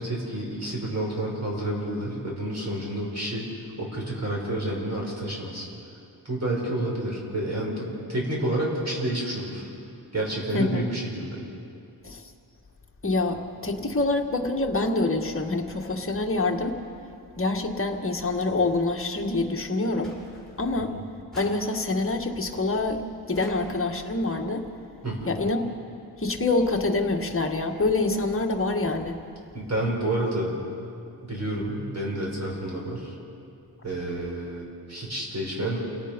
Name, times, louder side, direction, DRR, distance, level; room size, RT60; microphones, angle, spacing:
voice 1, 0.0-3.5 3.8-5.7 6.2-9.7 10.1-11.4 20.8-20.9 25.0-25.3 29.5-30.5 31.3-33.2 33.8-35.8, right 1 dB, 40° right, -2 dB, 5.8 m, -29 dB
voice 2, 10.5-10.8 12.0-12.2 13.0-16.8 17.3-20.1 20.6-21.0 21.3-24.6 25.3-25.7 26.2-29.2, left 2 dB, 30° left, 2 dB, 1.7 m, -26 dB
sound 1, 20.0-20.8 21.3-22.2 23.3-24.1, left 1 dB, ahead, 5.8 m, -48 dB
29.0 x 18.0 x 5.3 m, 2.5 s
wide cardioid pair, 110°, 40 cm